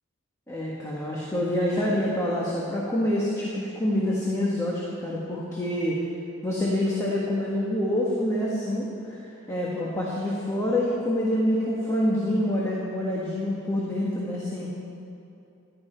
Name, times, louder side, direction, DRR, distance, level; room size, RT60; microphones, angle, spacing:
voice 1, 0.5-6.0 6.4-9.2 9.5-14.7, left 1 dB, 15° left, -5 dB, 1.3 m, -26 dB
15.0 x 11.0 x 4.4 m, 2.8 s
head